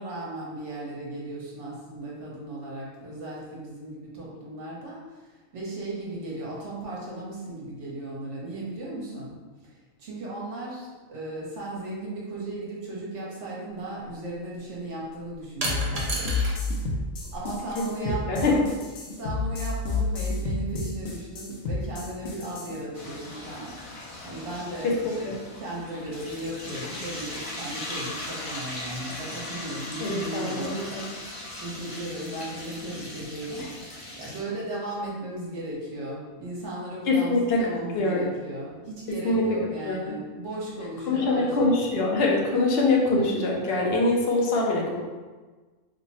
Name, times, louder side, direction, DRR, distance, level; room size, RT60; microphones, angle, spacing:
voice 1, 0.0-9.4 9.6-16.3 16.7-16.9 17.3-30.8 31.6-33.7 34.2-42.0, right 1 dB, 65° right, -5 dB, 1.2 m, -36 dB
sound 1, 13.7-13.8 15.6-16.6 16.9-17.8, right 2 dB, 40° right, 0.6 m, -32 dB
sound 2, 15.7-22.8, left 3 dB, 80° left, 1.0 m, -30 dB
voice 2, 17.8-18.6 24.8-24.9 25.2-25.3 30.0-31.1 37.1-37.6 37.9-38.3 39.2-39.4 39.9-40.2 41.1-45.0, left 2 dB, 60° left, -1 dB, 0.8 m, -24 dB
sound 3, 22.9-34.4, left 1 dB, 40° left, 0.5 m, -39 dB
3.2 x 2.2 x 4.0 m, 1.3 s
omnidirectional pair, 1.3 m